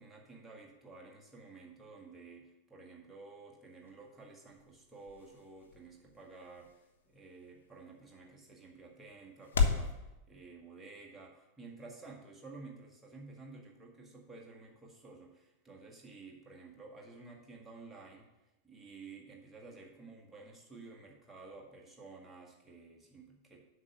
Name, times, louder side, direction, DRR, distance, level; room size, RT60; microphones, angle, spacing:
voice 1, 0.0-18.2 18.6-23.7, right 3 dB, 5° right, -2 dB, 1.8 m, -52 dB
sound 1, 3.7-9.9, left 5 dB, 70° left, 0.8 m, -38 dB
7.3 x 5.6 x 6.4 m, 0.99 s
figure-of-eight pair, 90°, 0 cm